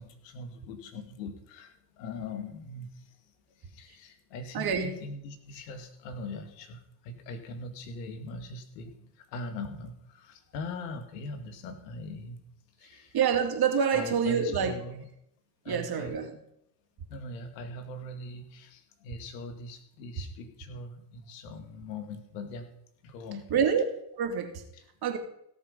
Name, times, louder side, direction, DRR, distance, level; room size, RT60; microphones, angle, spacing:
voice 1, 0.0-3.2 3.5-12.4 12.8-13.2 13.9-15.1 15.6-16.2 17.1-22.7 23.0-23.6 24.7-24.8, left 2 dB, 75° left, 6 dB, 2.3 m, -41 dB
voice 2, 4.5-5.0 13.1-14.7 15.7-16.3 23.5-23.8 24.2-24.6 25.0-25.2, right 7 dB, 50° right, 4 dB, 2.8 m, -26 dB
17.0 x 7.3 x 5.5 m, 0.75 s
hypercardioid pair, 75°, 49 cm